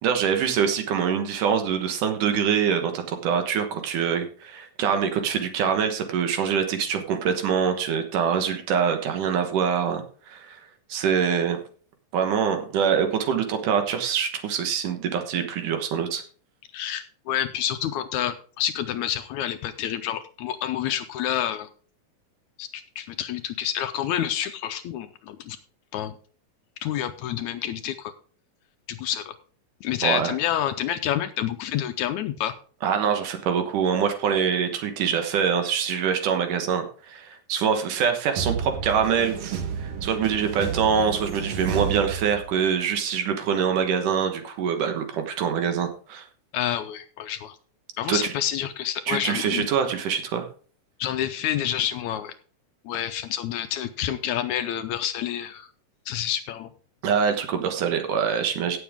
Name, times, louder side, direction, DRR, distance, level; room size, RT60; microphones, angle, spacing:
voice 1, 0.0-10.6 10.9-11.6 12.1-16.2 30.0-30.3 32.8-46.3 48.1-48.3 49.1-50.4 57.0-58.8, right 7 dB, 75° right, 6 dB, 2.7 m, -24 dB
voice 2, 16.7-21.7 22.6-25.6 25.9-26.1 26.8-28.1 28.9-29.3 29.8-32.5 46.5-47.6 48.0-49.7 51.0-52.3 52.9-55.7 56.1-56.7, left 11 dB, 75° left, 10 dB, 1.8 m, -28 dB
sound 1, 38.4-42.8, right 6 dB, 60° right, 2.1 m, -31 dB
16.5 x 7.2 x 3.5 m, 0.42 s
omnidirectional pair, 3.8 m